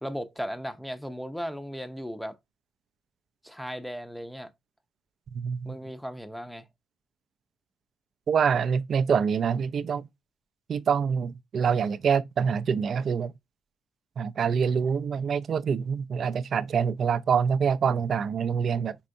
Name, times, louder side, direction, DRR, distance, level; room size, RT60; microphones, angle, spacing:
voice 1, 0.0-2.4 3.4-4.5 5.6-6.7, equal, ahead, 0.6 m, -36 dB
voice 2, 5.3-5.8 8.3-10.1 10.7-13.3 14.2-19.0, right 6 dB, 55° right, 0.4 m, -25 dB
4.5 x 4.2 x 2.6 m
cardioid pair, 90°, 0 cm